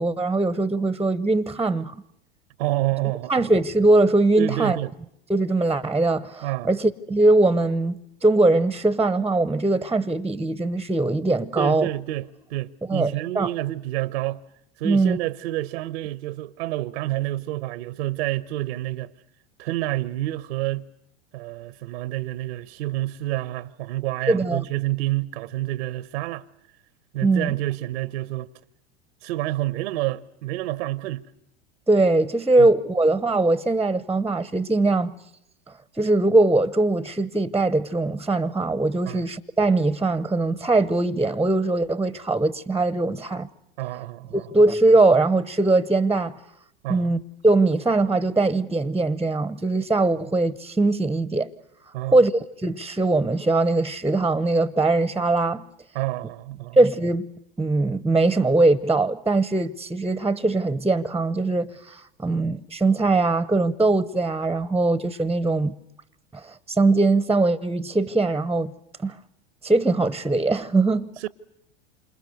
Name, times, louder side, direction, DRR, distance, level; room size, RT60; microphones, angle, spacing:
voice 1, 0.0-2.0 3.3-4.8 5.3-11.9 12.9-13.5 14.8-15.2 24.3-24.6 27.2-27.6 31.9-35.1 36.0-43.5 44.5-46.3 46.9-51.5 52.1-52.3 52.6-55.6 56.8-57.3 57.6-65.7 66.3-68.7 69.0-69.2 69.6-71.3, right 2 dB, 5° right, 0.9 m, -21 dB
voice 2, 2.6-3.5 4.4-4.9 6.4-6.7 11.6-14.4 14.8-19.1 19.6-20.9 21.3-26.5 27.1-28.5 29.2-31.2 32.6-32.7 39.0-39.2 43.8-44.5 46.8-47.1 51.9-52.2 55.9-56.8 71.2-71.3, right 16 dB, 70° right, 1.0 m, -28 dB
28.0 x 27.0 x 6.6 m
hypercardioid pair, 90°, 31 cm